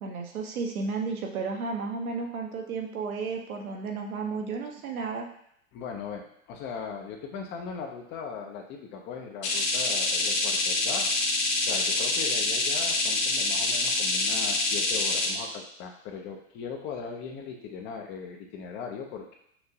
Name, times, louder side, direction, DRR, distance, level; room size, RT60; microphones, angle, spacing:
voice 1, 0.0-5.3, right 4 dB, 75° right, 2 dB, 1.0 m, -33 dB
voice 2, 5.7-11.2 11.6-19.4, left 6 dB, 25° left, 3 dB, 0.5 m, -39 dB
sound 1, 9.4-15.3, left 2 dB, 50° left, 1.1 m, -26 dB
5.9 x 2.6 x 2.8 m, 0.71 s
hypercardioid pair, 105°, 43 cm